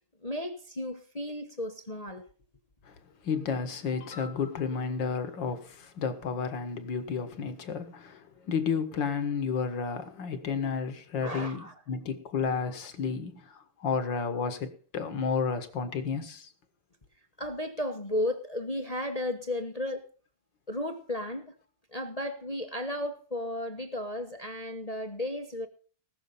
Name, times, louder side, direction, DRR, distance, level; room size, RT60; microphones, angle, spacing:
voice 1, 0.2-2.2 11.2-11.7 17.4-20.1 20.7-21.5 21.9-25.7, left 1 dB, 25° left, 0.9 m, -34 dB
voice 2, 3.2-16.5, left 5 dB, 60° left, 2.0 m, -32 dB
19.0 x 6.6 x 5.6 m
omnidirectional pair, 2.4 m